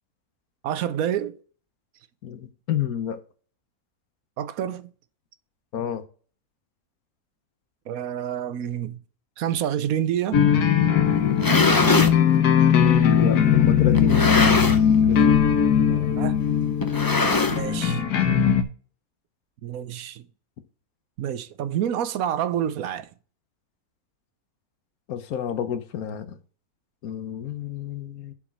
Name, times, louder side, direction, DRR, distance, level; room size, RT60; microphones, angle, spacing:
voice 1, 0.6-1.4 4.4-4.9 7.9-9.0 9.4-10.4 15.9-16.4 17.5-18.0 19.6-20.2 21.2-23.1, right 10 dB, 70° right, 1.1 m, -28 dB
voice 2, 2.2-3.2 5.7-6.0 12.8-14.4 15.0-15.4 17.3-17.7 25.1-26.4 27.0-28.3, left 9 dB, 75° left, 1.3 m, -30 dB
sound 1, 10.3-18.6, left 8 dB, 90° left, 1.4 m, -19 dB
sound 2, 11.2-12.2 12.9-13.0 13.9-15.0 15.3-15.6 15.8-15.9 16.8-17.9, left 3 dB, 25° left, 0.5 m, -22 dB
7.2 x 4.9 x 6.1 m
omnidirectional pair, 1.6 m